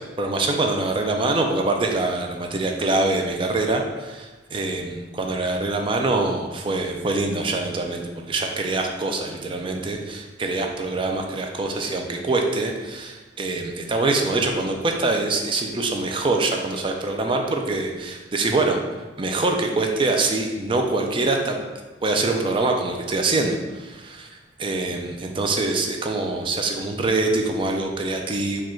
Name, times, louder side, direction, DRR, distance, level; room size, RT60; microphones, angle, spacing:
voice 1, 0.2-18.8 19.2-21.6 22.0-28.6, right 2 dB, 25° right, 2 dB, 0.4 m, -24 dB
4.7 x 2.4 x 4.4 m, 1.2 s
head